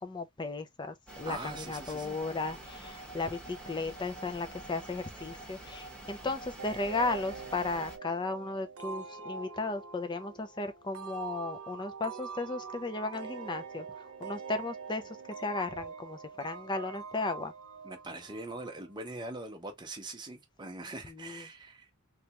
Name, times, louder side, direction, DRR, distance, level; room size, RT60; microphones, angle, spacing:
voice 1, 0.0-13.9 14.2-15.0 15.4-17.5 21.0-21.4, left 3 dB, 20° left, 0.5 m, -35 dB
sound 1, 1.1-8.0, right 2 dB, 5° left, 1.0 m, -46 dB
voice 2, 1.3-2.2 17.8-21.9, right 2 dB, 20° right, 0.8 m, -42 dB
sound 2, 6.6-19.0, right 5 dB, 80° right, 0.8 m, -44 dB
3.2 x 2.4 x 2.9 m
head